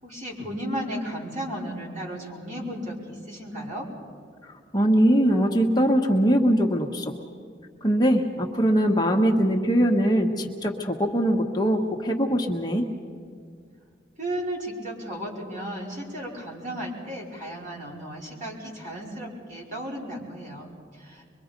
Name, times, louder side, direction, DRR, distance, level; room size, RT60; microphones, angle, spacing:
voice 1, 0.0-3.9 14.2-21.2, equal, 45° right, -3 dB, 5.1 m, -34 dB
voice 2, 4.4-7.1 7.8-12.9, equal, 20° left, 1 dB, 1.3 m, -22 dB
24.5 x 23.0 x 5.3 m, 2.2 s
head